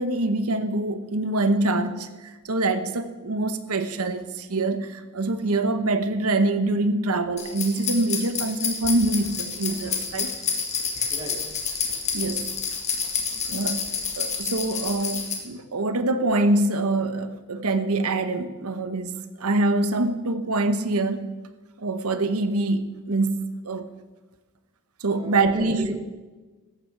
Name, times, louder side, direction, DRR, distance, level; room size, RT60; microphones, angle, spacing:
voice 1, 0.0-10.3 12.1-12.5 13.5-21.4 21.8-23.9 25.0-26.0, right 2 dB, 75° right, 10 dB, 1.0 m, -25 dB
sound 1, 7.4-15.3, left 6 dB, 30° left, 2.0 m, -29 dB
voice 2, 11.1-11.5 25.1-26.0, right 1 dB, 20° right, 1 dB, 2.3 m, -36 dB
14.5 x 12.0 x 4.7 m, 1.2 s
head